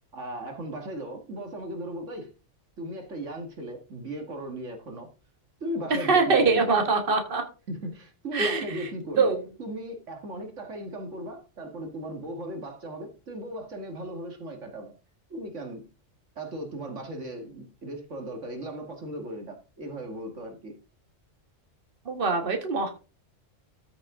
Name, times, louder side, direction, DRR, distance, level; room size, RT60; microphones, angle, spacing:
voice 1, 0.1-2.3 2.8-5.1 5.6-6.7 7.7-9.3 9.6-14.9 15.3-15.8 16.4-20.7, right 1 dB, 70° right, 4 dB, 2.0 m, -37 dB
voice 2, 6.0-7.4 8.3-8.9 9.2-9.4 22.1-22.9, right 4 dB, 45° right, 5 dB, 1.9 m, -23 dB
13.5 x 6.1 x 3.7 m, 0.33 s
omnidirectional pair, 1.3 m